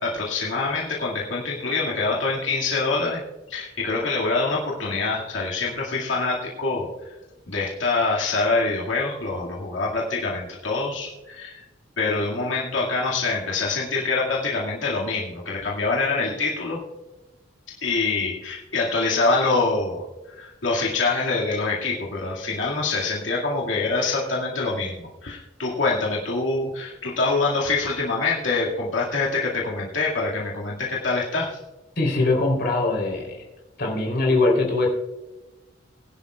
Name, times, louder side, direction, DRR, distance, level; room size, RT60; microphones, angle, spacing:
voice 1, 0.0-3.2 3.5-6.9 7.5-11.6 12.0-16.8 17.8-20.0 20.3-24.9 25.2-31.6, left 3 dB, 90° left, -4 dB, 2.2 m, -25 dB
voice 2, 32.0-33.4 33.8-34.9, left 2 dB, 55° left, -1 dB, 3.7 m, -22 dB
21.0 x 11.0 x 2.4 m, 1.1 s
head